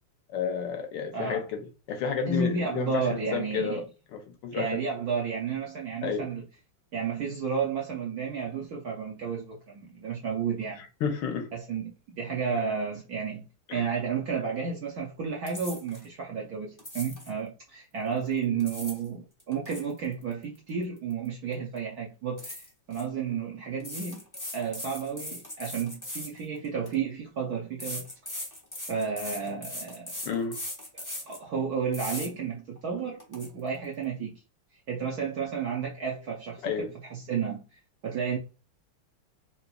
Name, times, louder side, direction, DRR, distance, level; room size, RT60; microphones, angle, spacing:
voice 1, 0.3-4.8 6.0-6.3 11.0-11.5 13.7-13.8 30.2-30.6 36.6-36.9, left 6 dB, 75° left, 1.1 m, -31 dB
voice 2, 1.1-1.5 2.3-3.8 4.5-6.4 6.9-10.8 11.5-22.6 22.9-24.3 24.5-28.0 28.9-30.1 30.9-34.4 34.9-38.4, right 6 dB, 75° right, 0.8 m, -32 dB
sound 1, 15.5-16.0 16.8-17.3 18.4-19.1 19.4-21.3 21.5-21.8 22.4-23.0 23.8-26.9 27.8-31.4 31.9-32.3 32.8-32.9 33.2-33.5, left 1 dB, 20° left, 0.5 m, -39 dB
3.8 x 2.8 x 2.2 m
omnidirectional pair, 2.4 m